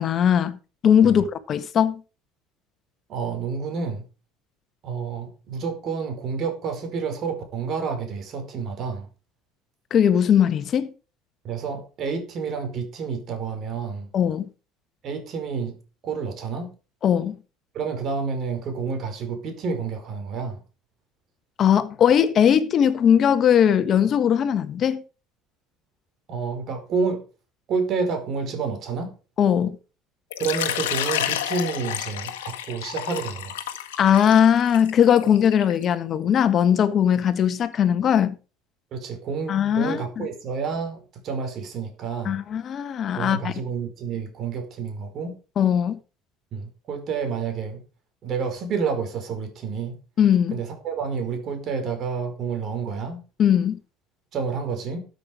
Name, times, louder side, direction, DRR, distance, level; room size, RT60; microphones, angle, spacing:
voice 1, 0.0-2.0 9.9-10.9 14.1-14.5 17.0-17.4 21.6-25.0 29.4-29.7 34.0-38.4 39.5-40.3 42.2-43.5 45.6-46.0 50.2-50.5 53.4-53.8, left 9 dB, 45° left, 1.5 m, -19 dB
voice 2, 3.1-4.0 4.8-9.1 11.4-14.1 15.0-16.7 17.7-20.6 26.3-27.2 27.7-29.2 30.4-33.6 38.9-42.4 43.2-45.3 46.5-47.8 48.2-50.0 50.5-53.2 54.3-55.0, right 5 dB, 50° right, 5.1 m, -29 dB
Water / Liquid, 30.3-35.8, left 11 dB, 80° left, 1.6 m, -30 dB
13.0 x 8.0 x 5.1 m
hypercardioid pair, 70°, 0 cm